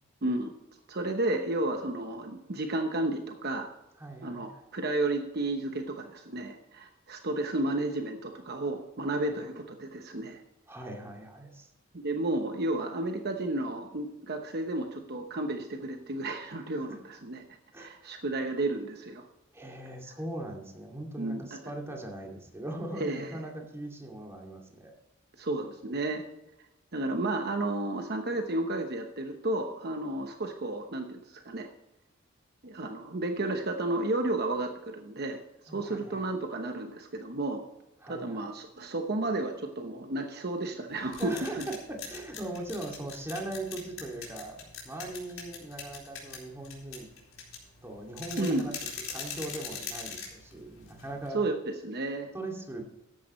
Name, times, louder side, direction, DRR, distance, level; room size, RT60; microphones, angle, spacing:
voice 1, 0.2-0.5 0.9-3.7 4.2-10.4 11.9-17.4 17.8-19.3 21.2-21.6 23.0-23.3 25.4-26.2 26.9-31.7 32.6-37.6 38.1-41.6 48.4-48.7 51.3-51.6 51.8-52.3, right 2 dB, 50° right, 5 dB, 1.0 m, -32 dB
voice 2, 4.0-4.7 9.3-9.4 10.7-11.7 16.9-17.0 17.7-18.1 19.5-24.9 35.7-36.2 38.0-38.5 41.2-47.1 47.8-48.7 49.1-51.4 52.3-52.8, right 1 dB, 15° right, 0 dB, 2.4 m, -40 dB
sound 1, 40.9-51.3, left 6 dB, 90° left, 4.1 m, -42 dB
14.0 x 10.5 x 3.2 m, 0.94 s
head